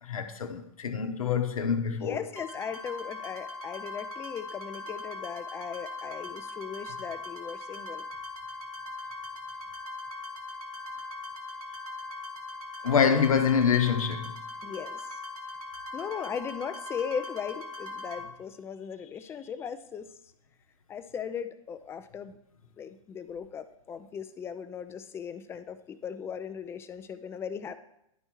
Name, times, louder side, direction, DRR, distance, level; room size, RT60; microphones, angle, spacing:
voice 1, 0.0-2.2 12.8-14.4, left 7 dB, 70° left, 0.9 m, -26 dB
voice 2, 1.9-8.0 14.6-15.1 15.9-20.1 20.9-22.3 22.8-27.8, left 7 dB, 15° left, 0.4 m, -38 dB
sound 1, 2.4-18.2, left 2 dB, 75° right, 1.7 m, -40 dB
11.0 x 4.4 x 4.5 m
figure-of-eight pair, 115°, 18 cm